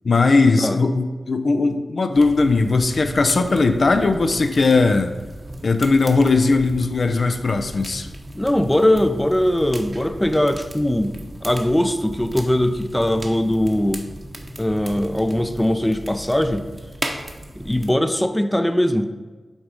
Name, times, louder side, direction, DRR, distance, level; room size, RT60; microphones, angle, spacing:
voice 1, 0.0-5.1 5.6-8.1, left 3 dB, 65° left, 7 dB, 0.4 m, -18 dB
sound 1, 2.1-17.9, right 1 dB, 40° right, 0.9 m, -36 dB
voice 2, 8.3-11.1 11.4-14.0 14.6-16.6 17.6-19.1, left 1 dB, 15° left, 8 dB, 0.5 m, -20 dB
6.2 x 3.7 x 4.8 m, 1.3 s
cardioid pair, 40°, 0 cm